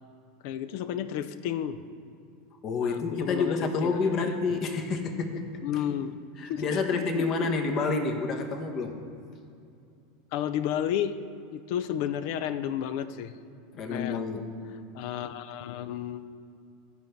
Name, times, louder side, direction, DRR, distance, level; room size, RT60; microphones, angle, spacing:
voice 1, 0.4-1.8 2.8-4.0 5.6-6.2 6.5-7.5 10.3-11.2 11.5-13.4 13.9-14.2 14.9-16.3, left 10 dB, 60° left, 12 dB, 0.5 m, -32 dB
voice 2, 2.6-5.5 6.4-9.0 13.7-14.5, left 4 dB, 40° left, 5 dB, 1.1 m, -28 dB
14.5 x 5.4 x 4.6 m, 2.5 s
hypercardioid pair, 85°, 0 cm